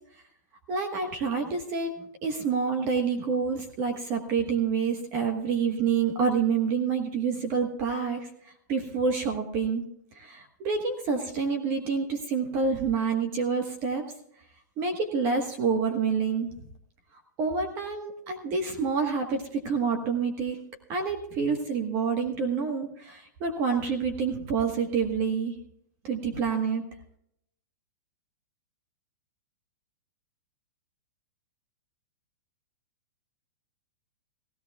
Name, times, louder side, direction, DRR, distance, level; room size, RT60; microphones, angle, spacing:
voice 1, 0.7-8.3 8.7-9.8 10.1-14.0 14.8-16.5 17.4-20.6 20.9-25.5 26.0-26.8, right 5 dB, 25° right, 5 dB, 1.3 m, -28 dB
16.5 x 16.0 x 2.3 m, 0.75 s
hypercardioid pair, 175°, 10 cm